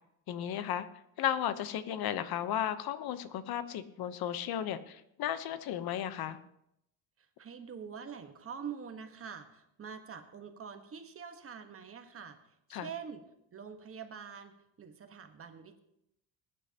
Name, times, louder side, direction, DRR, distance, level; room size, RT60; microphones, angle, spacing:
voice 1, 0.3-0.9 1.2-6.4 12.7-12.9, left 10 dB, 65° left, 12 dB, 1.0 m, -34 dB
voice 2, 7.2-13.2 13.5-15.8, right 7 dB, 35° right, 7 dB, 1.4 m, -45 dB
20.5 x 10.0 x 2.9 m, 0.79 s
cardioid pair, 130°, 40 cm